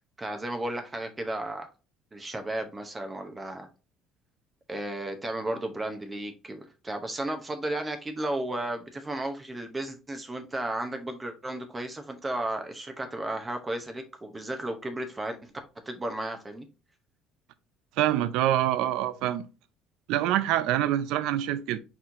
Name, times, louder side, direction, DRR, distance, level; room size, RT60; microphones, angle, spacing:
voice 1, 0.2-1.7 2.1-3.7 4.7-15.5 15.9-16.7, right 1 dB, 15° right, 0.7 m, -34 dB
voice 2, 18.0-19.4 20.1-21.8, right 12 dB, 80° right, 0.4 m, -25 dB
4.4 x 4.1 x 2.5 m
cardioid pair, 130°, 0 cm